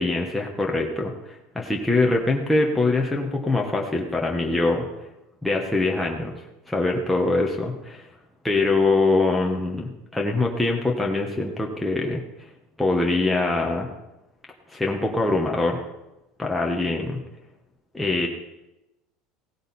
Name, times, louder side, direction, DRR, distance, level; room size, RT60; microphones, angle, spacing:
voice 1, 0.0-4.8 5.4-6.3 6.7-8.1 8.4-12.5 12.8-13.9 14.7-15.8 16.4-17.2 17.9-18.3, left 2 dB, 5° left, -1 dB, 1.3 m, -23 dB
17.0 x 10.0 x 4.3 m, 0.95 s
supercardioid pair, 135°, 0 cm